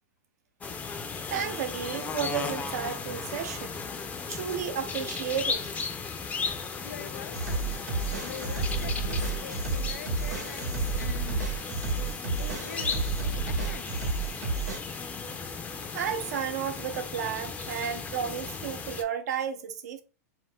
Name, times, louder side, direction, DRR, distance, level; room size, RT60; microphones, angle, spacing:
sound 1, 0.6-19.0, left 5 dB, 15° left, 0.4 m, -36 dB
voice 1, 1.3-3.8 4.3-5.7 15.9-20.0, right 8 dB, 70° right, 0.6 m, -33 dB
voice 2, 6.8-7.8 8.2-11.5 12.4-13.9, left 9 dB, 90° left, 0.4 m, -44 dB
sound 2, 7.3-14.8, right 3 dB, 85° right, 1.0 m, -31 dB
2.4 x 2.1 x 3.5 m
hypercardioid pair, 125°, 9 cm